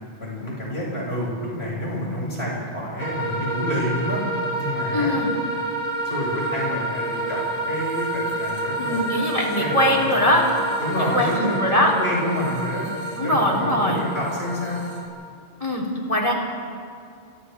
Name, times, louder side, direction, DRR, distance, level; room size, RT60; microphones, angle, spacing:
voice 1, 0.2-4.2 4.6-5.2 6.0-9.0 9.6-10.3 10.8-12.9 13.2-14.8, equal, 70° left, -5 dB, 8.3 m, -28 dB
sound 1, 3.0-15.1, right 1 dB, 25° right, 6.2 m, -28 dB
voice 2, 4.9-5.3 8.8-10.5 11.1-11.9 13.2-14.0 15.6-16.3, left 1 dB, 30° left, -2 dB, 4.0 m, -21 dB
29.5 x 26.5 x 3.7 m, 2.4 s
omnidirectional pair, 1.1 m